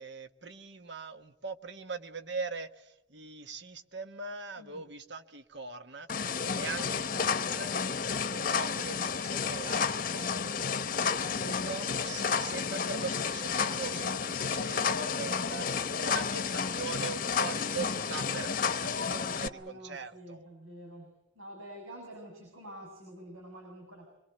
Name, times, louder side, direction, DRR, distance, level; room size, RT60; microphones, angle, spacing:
voice 1, 0.0-7.8 8.3-10.5 11.4-20.4, right 4 dB, 55° right, 9 dB, 1.4 m, -41 dB
sound 1, 6.1-19.5, left 6 dB, 40° left, 0.9 m, -31 dB
voice 2, 6.5-7.6 10.3-11.7 12.5-12.7 19.4-24.1, right 1 dB, 80° right, 1 dB, 7.0 m, -48 dB
26.5 x 22.0 x 7.9 m, 0.91 s
head